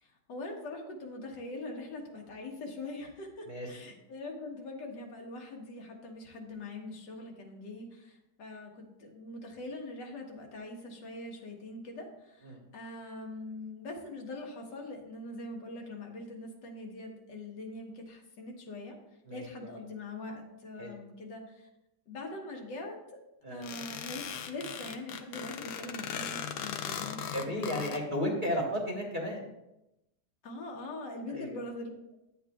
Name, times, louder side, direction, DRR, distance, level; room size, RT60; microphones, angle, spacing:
voice 1, 0.0-19.0 19.3-21.7 22.1-23.0 23.5-28.0 30.4-31.9, left 2 dB, 85° left, 1 dB, 1.8 m, -42 dB
sound 1, 23.6-28.0, left 8 dB, 70° left, 1.0 m, -38 dB
voice 2, 27.3-29.4 31.3-31.5, equal, 30° right, -2 dB, 1.3 m, -33 dB
9.5 x 7.9 x 2.3 m, 0.90 s
omnidirectional pair, 1.9 m